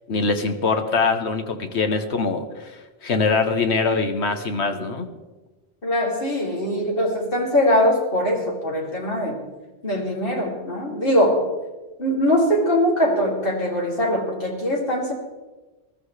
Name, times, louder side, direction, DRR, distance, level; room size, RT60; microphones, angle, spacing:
voice 1, 0.1-2.7 3.0-5.1, left 4 dB, 80° left, 7 dB, 1.4 m, -23 dB
voice 2, 5.8-9.4 9.8-11.4 12.0-15.1, equal, 55° left, -2 dB, 2.9 m, -22 dB
20.5 x 13.5 x 3.3 m, 1.2 s
omnidirectional pair, 1.1 m